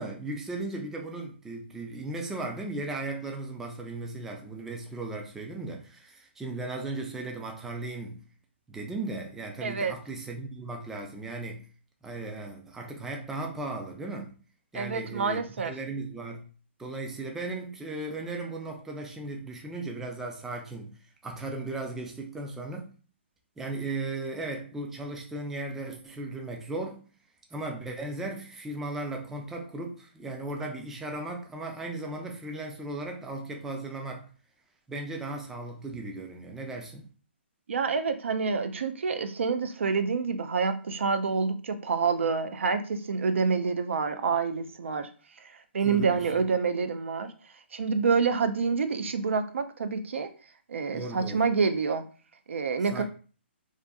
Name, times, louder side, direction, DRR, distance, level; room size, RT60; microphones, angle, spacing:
voice 1, 0.0-8.2 8.7-11.7 12.0-14.3 14.7-16.5 16.8-22.9 23.6-27.0 27.5-34.3 34.9-37.1 45.8-46.3 50.9-51.4 52.9-53.0, right 2 dB, 5° right, 0.3 m, -36 dB
voice 2, 9.6-9.9 14.7-15.7 37.7-45.1 45.7-47.3 47.7-50.3 50.7-52.0 52.5-53.0, right 5 dB, 85° right, 0.4 m, -27 dB
2.5 x 2.4 x 2.2 m
hypercardioid pair, 150°, 6 cm